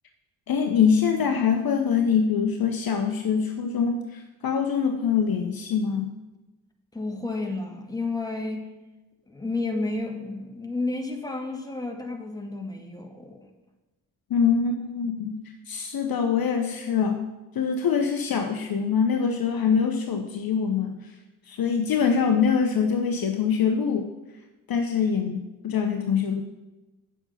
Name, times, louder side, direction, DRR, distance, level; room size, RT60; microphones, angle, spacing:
voice 1, 0.5-6.1 14.3-15.3 15.7-17.2 17.5-21.0 21.5-24.1 24.7-26.4, left 6 dB, 50° left, 5 dB, 1.0 m, -24 dB
voice 2, 6.9-8.7 9.3-13.4, left 2 dB, 10° left, 1 dB, 1.9 m, -31 dB
8.3 x 7.1 x 5.5 m, 1.1 s
hypercardioid pair, 40°, 47 cm